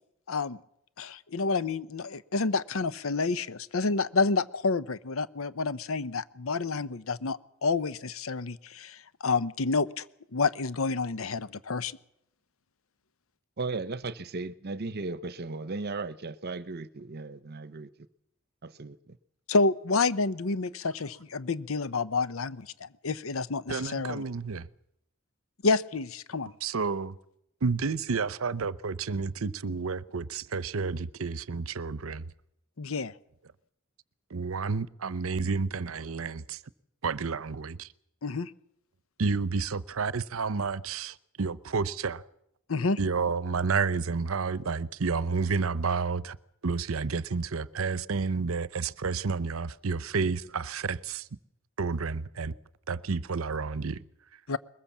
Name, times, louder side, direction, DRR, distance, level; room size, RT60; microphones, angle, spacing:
voice 1, 0.3-0.6 1.0-10.0 10.3-12.0 19.5-24.2 25.6-26.5 32.8-33.1 38.2-38.5 42.7-43.0 54.5-54.6, left 3 dB, 75° left, 0.8 m, -29 dB
voice 2, 13.6-17.9 18.6-19.2, right 3 dB, 50° right, 0.9 m, -36 dB
voice 3, 23.7-24.7 26.6-27.1 27.6-32.2 34.3-36.6 37.0-37.9 39.2-42.2 43.0-46.4 46.6-51.2 51.8-52.5 52.9-54.0, right 4 dB, 80° right, 0.7 m, -30 dB
22.0 x 20.5 x 7.3 m
head